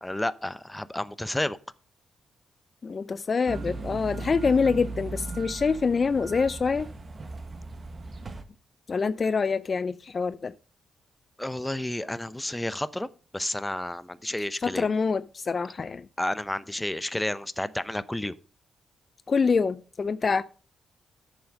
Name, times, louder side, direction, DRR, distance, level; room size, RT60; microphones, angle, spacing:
voice 1, 0.0-1.6 11.4-13.1 13.3-14.9 16.2-18.3, left 1 dB, 10° left, 0.7 m, -31 dB
voice 2, 2.8-6.9 8.9-10.5 14.6-16.1 19.3-20.4, left 5 dB, 45° left, 0.4 m, -25 dB
sound 1, 3.5-8.4, right 3 dB, 40° right, 1.4 m, -37 dB
10.0 x 7.3 x 5.2 m
cardioid pair, 65°, 0 cm